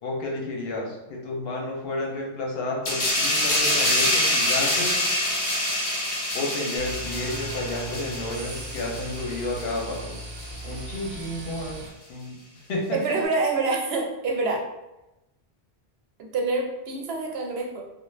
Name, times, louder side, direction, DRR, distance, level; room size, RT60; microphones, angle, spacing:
voice 1, 0.0-5.0 6.3-10.2 10.6-11.8 12.1-12.4 12.7-13.0, left 2 dB, 70° left, -1 dB, 0.9 m, -31 dB
sound 1, 2.8-10.0 10.4-10.6, left 1 dB, 40° left, 0.6 m, -26 dB
sound 2, 6.8-11.9, right 1 dB, 50° right, 0.5 m, -38 dB
voice 2, 12.9-14.6 16.2-17.8, right 3 dB, 80° right, 1 dB, 0.8 m, -26 dB
2.4 x 2.1 x 3.1 m, 0.95 s
omnidirectional pair, 1.0 m